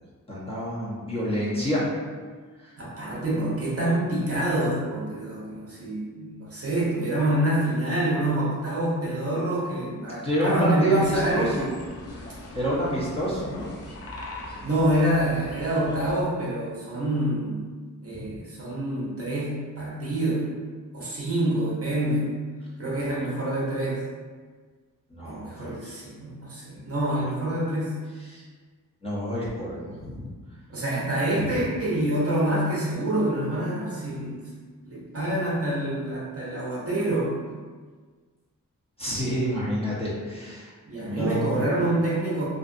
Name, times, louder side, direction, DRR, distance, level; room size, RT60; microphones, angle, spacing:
voice 1, 0.3-1.9 2.6-2.7 10.2-11.7 12.1-12.2 12.5-13.7 18.1-18.3 25.1-26.0 26.7-26.9 28.3-28.4 29.0-30.3 31.5-31.6 39.0-40.7 41.0-41.7, equal, 15° left, -8 dB, 0.8 m, -28 dB
voice 2, 2.8-11.7 14.6-17.7 18.0-20.6 20.9-22.4 22.8-24.0 25.2-27.9 30.7-34.4 34.9-37.3 40.9-42.5, right 1 dB, 45° right, -5 dB, 0.7 m, -26 dB
sound 1, 11.0-16.2, left 1 dB, 45° left, 0.5 m, -41 dB
2.6 x 2.4 x 2.5 m, 1.5 s
wide cardioid pair, 85°, 34 cm